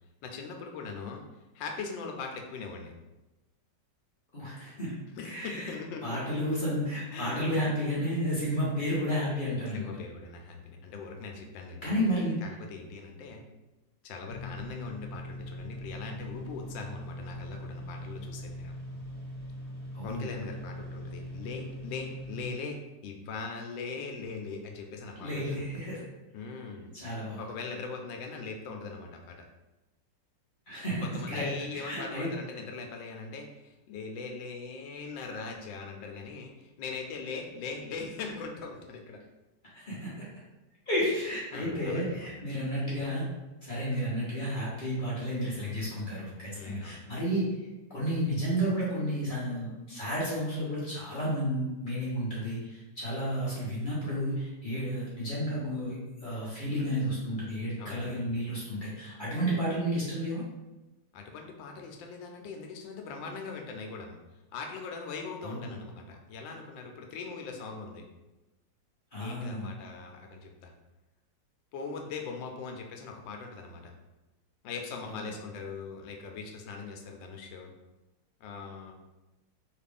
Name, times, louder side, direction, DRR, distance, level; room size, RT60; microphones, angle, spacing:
voice 1, 0.2-1.2 1.5-2.9 5.2-6.4 7.1-7.5 9.7-13.5 14.0-18.7 20.0-25.6 26.3-26.9 27.4-29.4 31.0-39.2 41.5-42.3 46.5-47.0 57.8-58.2 61.1-64.2 64.5-68.0 69.2-70.7 71.7-73.9 74.6-77.7 78.4-78.9, left 4 dB, 85° left, 2 dB, 1.3 m, -40 dB
voice 2, 4.3-4.9 5.2-5.7 6.0-9.9 11.8-12.4 19.9-20.3 25.2-26.0 26.9-27.4 30.7-32.3 39.6-40.1 40.9-43.2 43.6-47.5 47.9-60.4 65.4-65.7 69.1-69.7 75.1-75.3, equal, 35° left, -8 dB, 0.9 m, -32 dB
sound 1, 14.3-22.5, equal, 70° right, 1.7 m, -41 dB
3.5 x 2.4 x 3.4 m, 1.0 s
omnidirectional pair, 2.0 m